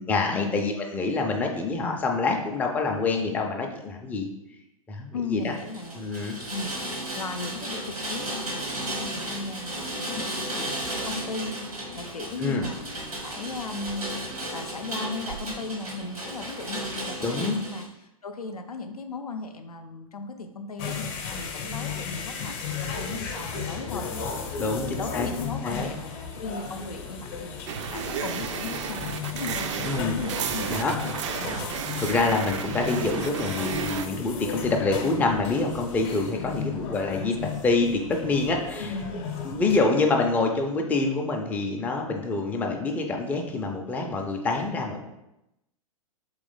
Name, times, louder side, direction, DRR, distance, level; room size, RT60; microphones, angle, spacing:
voice 1, 0.0-4.3 4.9-5.5 5.9-6.4 12.4-12.6 17.2-17.6 24.6-25.9 29.8-30.2 30.7-30.9 32.0-37.4 37.6-38.9 39.4-45.0, left 3 dB, 10° left, 1 dB, 0.4 m, -26 dB
voice 2, 5.1-6.0 6.5-6.7 7.1-11.5 11.9-14.0 14.5-27.6 27.9-31.2 36.4-37.6 38.8-39.7, left 3 dB, 90° left, 6 dB, 0.5 m, -37 dB
Rain, 5.5-17.9, right 1 dB, 85° right, 1.2 m, -34 dB
sound 1, 20.8-39.8, left 6 dB, 45° left, 0.7 m, -35 dB
sound 2, 27.7-34.1, right 7 dB, 55° right, 0.4 m, -32 dB
3.1 x 3.0 x 3.9 m, 0.90 s
figure-of-eight pair, 110°, 19 cm